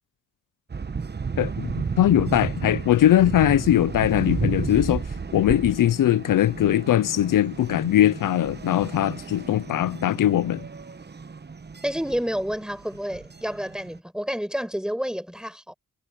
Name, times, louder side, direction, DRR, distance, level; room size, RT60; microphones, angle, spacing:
sound 1, 0.7-14.0, right 5 dB, 30° right, 1.0 m, -33 dB
voice 1, 1.4-5.0 5.3-10.7, left 12 dB, 80° left, 0.6 m, -21 dB
voice 2, 11.8-15.7, equal, ahead, 5.6 m, -29 dB
cardioid pair, 70°, 32 cm